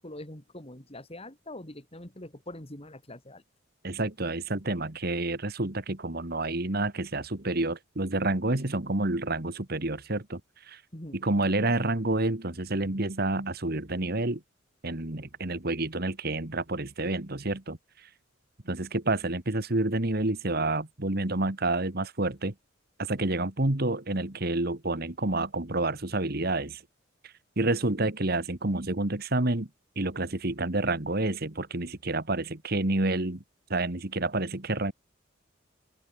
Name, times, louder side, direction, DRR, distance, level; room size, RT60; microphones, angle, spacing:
voice 1, 0.0-3.4 10.9-11.2, left 1 dB, 30° left, 3.8 m, -43 dB
voice 2, 3.8-10.8 11.1-14.4 14.8-18.1 18.7-22.5 23.0-26.8 27.6-29.7 30.0-33.4 33.7-34.9, right 2 dB, 50° right, 2.0 m, -29 dB
open air
head